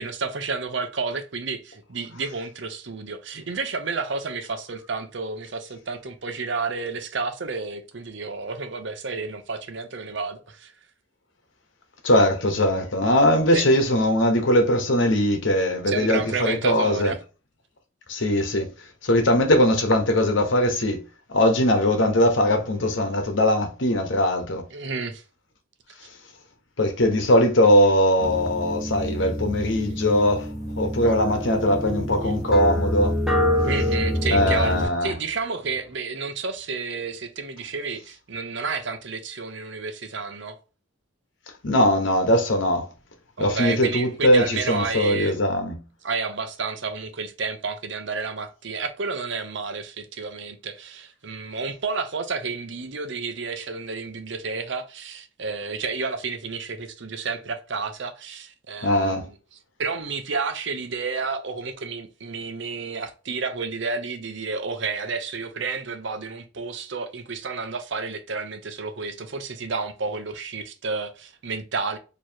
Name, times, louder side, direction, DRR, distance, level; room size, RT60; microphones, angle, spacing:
voice 1, 0.0-10.7 13.5-13.6 15.9-17.2 24.7-25.2 33.6-40.6 43.4-45.4 46.0-59.2 59.8-72.0, right 4 dB, 60° right, 0.7 m, -31 dB
voice 2, 12.0-17.1 18.1-18.7 19.0-21.0 21.3-24.6 26.8-33.1 34.3-35.1 41.6-42.9 43.4-45.8 58.8-59.3, left 1 dB, 65° left, 1.1 m, -20 dB
sound 1, 28.2-34.9, equal, 5° right, 1.4 m, -26 dB
4.7 x 3.0 x 2.9 m
head